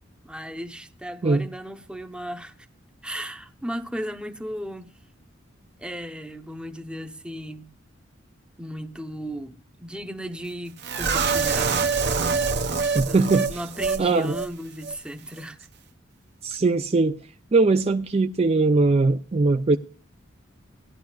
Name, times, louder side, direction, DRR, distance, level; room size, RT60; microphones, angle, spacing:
voice 1, 0.2-2.5 3.0-5.0 5.8-7.7 8.6-11.7 13.0-15.6, equal, 5° right, 0.8 m, -35 dB
sound 1, 10.8-14.0 14.3-14.5 14.8-14.9, right 5 dB, 60° right, 1.1 m, -25 dB
voice 2, 12.9-13.6 14.0-14.3 16.4-17.2 17.5-19.8, right 3 dB, 30° right, 0.4 m, -20 dB
17.5 x 11.5 x 2.3 m
head